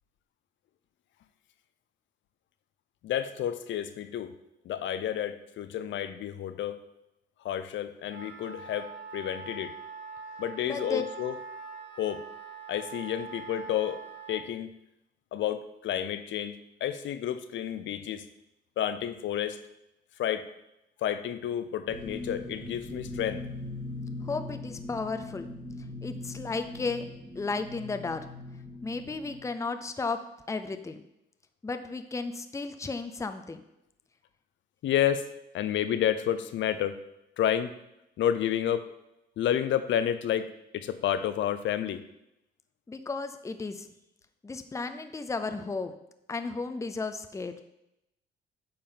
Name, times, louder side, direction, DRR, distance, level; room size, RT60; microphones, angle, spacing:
voice 1, 3.0-4.3 4.6-6.8 7.4-9.8 10.4-11.4 12.0-12.2 12.7-14.0 14.3-14.7 15.3-18.2 18.8-19.6 20.2-20.5 21.0-23.4 34.8-35.2 35.5-37.0 37.4-37.7 38.2-38.8 39.4-42.0, left 10 dB, 70° left, 12 dB, 0.6 m, -30 dB
Wind instrument woodwind instrument, 8.1-14.4, right 5 dB, 65° right, 1.4 m, -43 dB
voice 2, 10.6-11.0 24.2-25.5 26.0-27.0 27.4-28.2 28.8-30.2 30.5-31.0 31.6-33.6 42.9-43.9 44.4-45.9 46.3-47.5, left 4 dB, 15° left, 8 dB, 0.5 m, -34 dB
sound 1, 21.9-29.4, left 2 dB, 5° right, 1.5 m, -40 dB
8.7 x 5.2 x 3.9 m, 0.85 s
cardioid pair, 90°, 20 cm